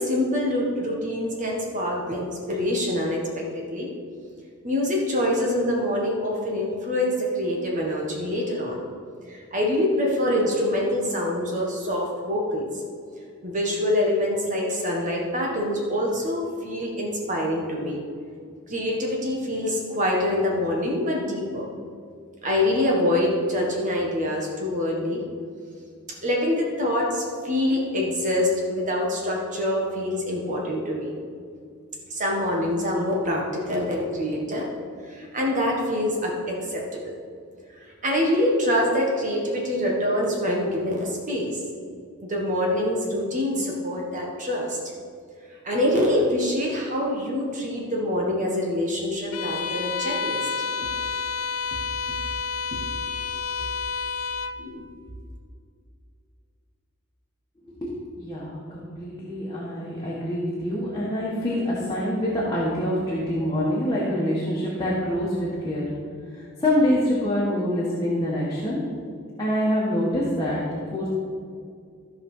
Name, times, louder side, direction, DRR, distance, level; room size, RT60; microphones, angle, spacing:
voice 1, 0.0-3.9 4.6-8.8 9.3-12.7 13.4-18.0 18.7-21.7 22.4-25.2 26.2-31.1 32.1-34.7 35.1-37.2 38.0-41.6 42.2-44.8 45.6-50.4 54.6-54.8, left 1 dB, 35° right, -1 dB, 1.5 m, -25 dB
Bowed string instrument, 49.3-54.6, left 5 dB, 90° left, 0.6 m, -29 dB
voice 2, 57.6-65.9 66.3-68.8 69.4-71.1, left 1 dB, 20° left, -7 dB, 1.7 m, -26 dB
14.5 x 5.4 x 5.6 m, 2.3 s
head